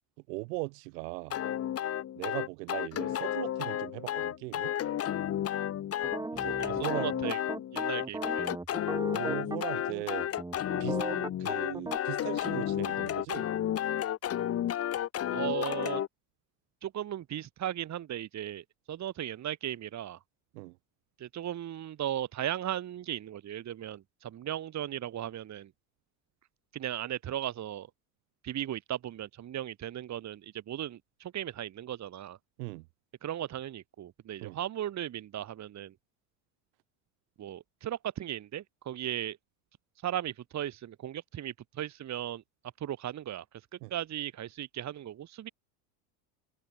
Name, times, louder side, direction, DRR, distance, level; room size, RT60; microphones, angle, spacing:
voice 1, 0.3-1.4 2.2-4.7 6.3-7.1 9.1-10.3 10.8-13.5 20.5-20.8 32.6-32.9 34.4-34.6 43.8-43.9, right 27 dB, 75° right, 6.2 m, -39 dB
sound 1, 1.3-16.1, left 11 dB, 30° left, 1.1 m, -32 dB
sound 2, 6.0-9.6 9.9-10.0 10.4-12.0, right 2 dB, 5° right, 2.5 m, -37 dB
voice 2, 6.6-7.4 7.7-8.5 15.3-16.0 16.8-20.2 21.2-25.7 26.7-27.9 28.4-32.4 33.2-35.9 37.4-39.4 40.0-42.4 42.8-43.4 43.9-45.5, right 11 dB, 35° right, 2.4 m, -36 dB
supercardioid pair, 120°, 48 cm